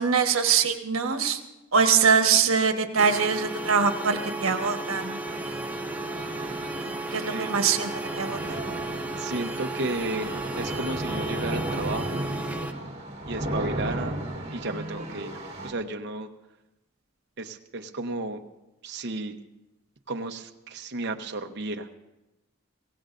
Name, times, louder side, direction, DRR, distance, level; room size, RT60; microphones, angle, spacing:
voice 1, 0.0-1.4 1.7-5.2 7.1-8.6, right 6 dB, 80° right, 5 dB, 1.3 m, -23 dB
sound 1, 3.0-12.7, right 2 dB, 5° right, 0.7 m, -34 dB
sound 2, 5.2-15.7, right 1 dB, 35° right, 3.2 m, -35 dB
voice 2, 7.3-7.6 9.2-12.3 13.3-14.2 14.5-15.4 15.6-16.3 17.4-18.4 18.8-19.4 20.1-21.9, right 2 dB, 55° right, 4 dB, 0.9 m, -33 dB
23.0 x 17.0 x 2.6 m, 1.0 s
head